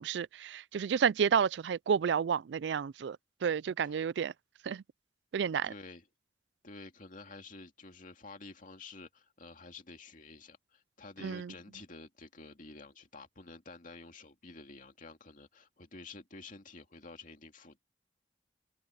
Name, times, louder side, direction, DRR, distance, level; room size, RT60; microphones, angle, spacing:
voice 1, 0.0-3.2 3.4-4.3 4.6-4.8 5.3-5.7 11.2-11.5, right 7 dB, 75° right, 0.4 m, -30 dB
voice 2, 5.6-6.1 6.6-17.8, left 3 dB, 50° left, 2.5 m, -50 dB
head